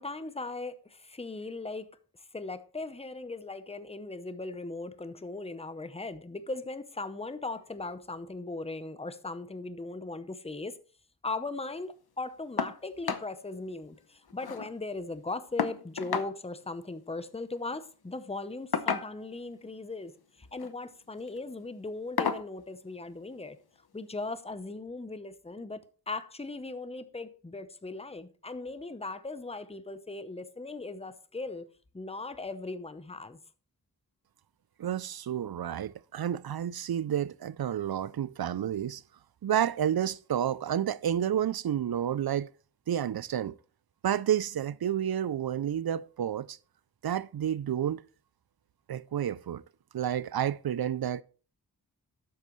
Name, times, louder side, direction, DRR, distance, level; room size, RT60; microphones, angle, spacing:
voice 1, 0.0-1.9 2.2-10.7 11.2-23.6 23.9-31.7 31.9-33.4, left 3 dB, 15° left, 0.8 m, -38 dB
sound 1, 12.6-12.8 13.1-13.3 13.7-13.8 14.0-14.7 15.6-16.3 17.6-17.8 18.7-19.4 20.4-20.7 21.2-21.4 22.2-22.5 23.8-23.9 24.4-24.5, left 6 dB, 70° left, 0.9 m, -32 dB
voice 2, 34.8-39.0 39.4-42.5 42.9-43.6 44.0-46.6 47.0-48.0 48.9-49.6 49.9-51.2, right 10 dB, 70° right, 0.5 m, -30 dB
12.0 x 8.7 x 3.1 m
wide cardioid pair, 85°, 39 cm